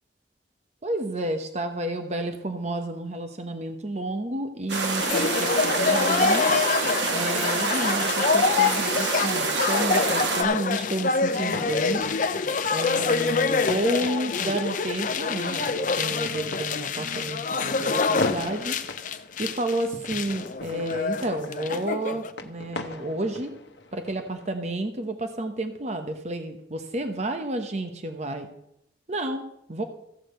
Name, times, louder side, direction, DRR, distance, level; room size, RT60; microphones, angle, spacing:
voice 1, 0.8-6.5 7.1-12.0 12.7-18.8 19.4-23.5 23.9-28.5 29.1-29.8, right 1 dB, 40° right, 6 dB, 0.9 m, -31 dB
sound 1, 4.7-10.4, right 4 dB, 90° right, 1.5 m, -27 dB
sound 2, 5.0-22.3, left 4 dB, 45° left, 0.7 m, -26 dB
sound 3, 8.5-24.5, left 2 dB, 75° left, 1.0 m, -40 dB
14.5 x 5.0 x 7.6 m, 0.78 s
head